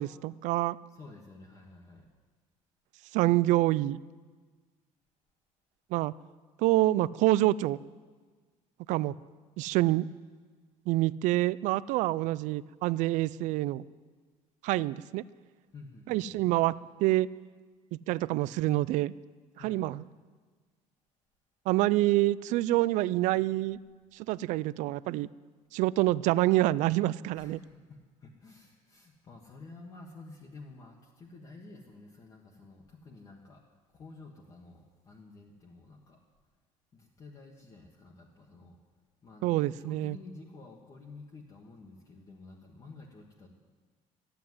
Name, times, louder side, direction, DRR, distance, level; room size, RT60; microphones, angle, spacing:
voice 1, 0.0-0.8 3.1-4.0 5.9-6.1 6.6-7.8 8.9-9.1 9.6-10.1 10.9-13.8 14.6-15.2 16.1-16.7 17.0-17.3 18.1-19.1 19.6-20.0 21.7-23.8 24.1-25.3 25.7-27.6 39.4-40.2, right 17 dB, 65° right, 20 dB, 0.4 m, -26 dB
voice 2, 0.9-2.1 15.7-16.6 19.6-19.8 27.3-33.6 33.9-36.2 36.9-38.8 39.2-43.5, left 3 dB, 25° left, -2 dB, 1.4 m, -51 dB
14.0 x 9.8 x 9.5 m, 1.4 s
cardioid pair, 175°, 14 cm